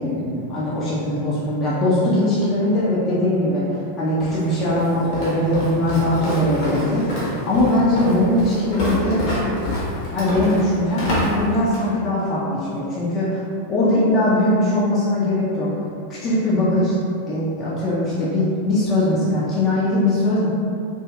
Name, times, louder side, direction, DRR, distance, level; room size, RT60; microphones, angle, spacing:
voice 1, 0.0-9.2 9.5-9.7 10.1-13.4 13.7-15.7 16.1-17.0 17.3-20.5, left 1 dB, 30° left, -8 dB, 0.5 m, -21 dB
Walk footsteps, 4.2-11.9, left 1 dB, 45° left, 0.8 m, -27 dB
2.6 x 2.6 x 2.2 m, 2.4 s
figure-of-eight pair, 90°, 0 cm